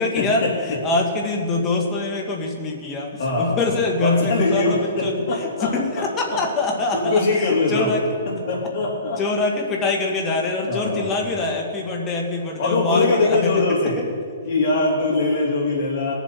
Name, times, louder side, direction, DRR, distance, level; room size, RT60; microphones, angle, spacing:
voice 1, 0.0-8.2 9.2-13.6, left 3 dB, 20° left, 0 dB, 1.5 m, -24 dB
voice 2, 3.2-3.6 4.0-6.0 6.3-6.4 6.9-8.0 8.3-9.2 10.7-11.3 12.6-14.0 14.4-16.1, left 3 dB, 45° left, -5 dB, 3.7 m, -22 dB
19.0 x 7.2 x 4.4 m, 2.1 s
hypercardioid pair, 160°, 0 cm